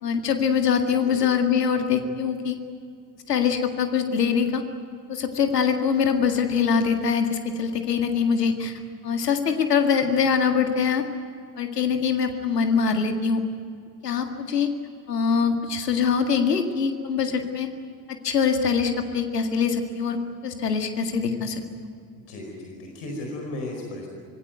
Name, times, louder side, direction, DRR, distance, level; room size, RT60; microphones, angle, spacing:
voice 1, 0.0-2.6 3.3-4.6 5.1-8.7 9.0-11.0 11.6-13.4 14.0-14.7 15.1-17.7 18.2-20.2 20.4-21.6, left 6 dB, 80° left, 6 dB, 2.0 m, -23 dB
voice 2, 22.1-24.1, left 1 dB, 65° left, 1 dB, 4.9 m, -35 dB
25.5 x 19.0 x 9.3 m, 2.4 s
figure-of-eight pair, 55°, 47 cm